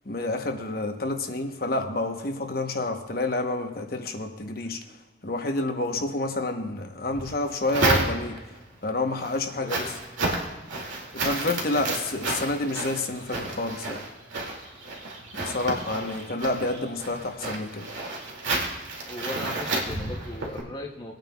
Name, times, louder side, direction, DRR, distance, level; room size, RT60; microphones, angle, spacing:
voice 1, 0.0-4.8 5.2-8.4 8.8-9.9 11.1-14.0 15.3-17.9, left 2 dB, 50° left, 4 dB, 1.0 m, -29 dB
sound 1, 7.1-8.6 9.0-20.6, right 2 dB, 90° right, 2.4 m, -31 dB
voice 2, 9.6-9.9 19.0-21.2, left 1 dB, 25° left, -1 dB, 0.8 m, -38 dB
21.0 x 9.1 x 2.3 m, 1.2 s
head